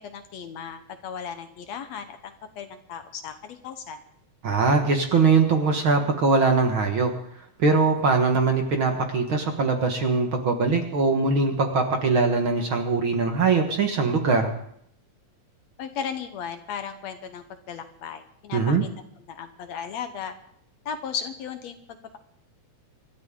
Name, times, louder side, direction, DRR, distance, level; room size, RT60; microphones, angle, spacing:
voice 1, 0.0-4.0 15.8-18.9 19.3-20.3 20.9-21.8, left 7 dB, 65° left, 8 dB, 2.1 m, -36 dB
voice 2, 4.4-7.1 7.6-14.5 18.5-18.8, right 4 dB, 50° right, 4 dB, 1.9 m, -22 dB
25.5 x 13.0 x 3.8 m, 0.69 s
omnidirectional pair, 3.5 m